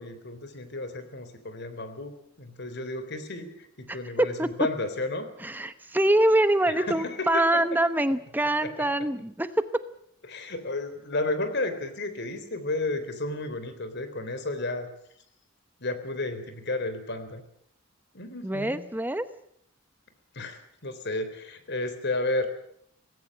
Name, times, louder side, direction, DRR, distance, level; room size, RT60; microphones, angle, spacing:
voice 1, 0.0-5.3 6.7-7.6 8.6-8.7 10.3-14.9 15.8-17.4 18.1-18.9 20.3-22.5, left 2 dB, 55° left, 10 dB, 3.6 m, -32 dB
voice 2, 3.9-4.5 5.4-9.6 18.4-19.2, right 1 dB, 10° right, 12 dB, 0.9 m, -24 dB
19.0 x 16.5 x 10.0 m, 0.69 s
head